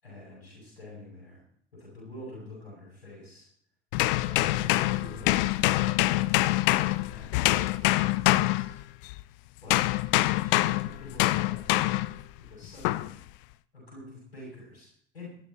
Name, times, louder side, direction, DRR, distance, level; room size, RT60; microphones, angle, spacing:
voice 1, 0.0-1.4 1.7-3.5 4.1-6.2 7.1-8.8 9.6-9.9 10.4-12.0 12.4-13.2 13.7-15.3, left 2 dB, 80° left, -4 dB, 7.1 m, -46 dB
sound 1, 3.9-9.2 9.7-12.2 12.8-13.1, left 18 dB, 65° left, 0.7 m, -25 dB
22.0 x 12.0 x 4.3 m, 0.64 s
figure-of-eight pair, 60°, 30 cm